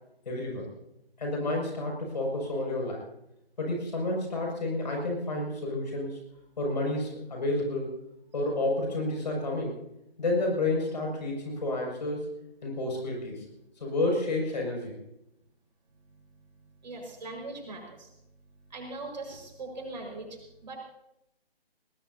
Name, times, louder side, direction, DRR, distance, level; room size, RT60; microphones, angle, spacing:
voice 1, 0.2-0.7 1.2-3.0 3.6-6.2 6.6-8.0 8.3-9.8 10.2-12.3 12.6-13.5 13.8-15.0, left 2 dB, 45° left, 0 dB, 6.4 m, -30 dB
voice 2, 16.8-18.1 18.7-20.8, right 2 dB, 45° right, 0 dB, 5.2 m, -40 dB
21.0 x 19.5 x 2.8 m, 0.84 s
figure-of-eight pair, 155°, 30 cm